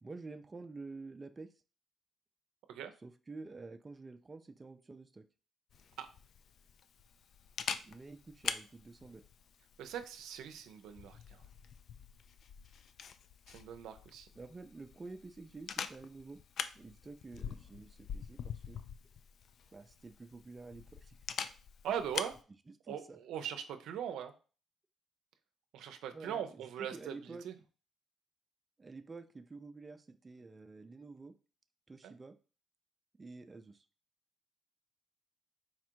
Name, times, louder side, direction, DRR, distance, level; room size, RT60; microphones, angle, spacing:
voice 1, 0.0-1.5 3.0-5.3 7.8-9.2 14.4-16.4 16.7-18.8 19.7-21.2 22.8-23.2 26.1-26.4 26.8-27.4 28.8-31.3 31.9-32.4 33.2-33.8, right 3 dB, 25° right, 8 dB, 0.4 m, -49 dB
Camera, 5.7-22.4, left 7 dB, 65° left, 0.3 m, -45 dB
voice 2, 9.8-11.4 13.5-14.3 21.8-22.3 22.9-24.3 25.7-27.5 32.0-32.1, right 9 dB, 85° right, 8 dB, 0.5 m, -41 dB
4.2 x 2.5 x 4.4 m, 0.36 s
cardioid pair, 90°, 0 cm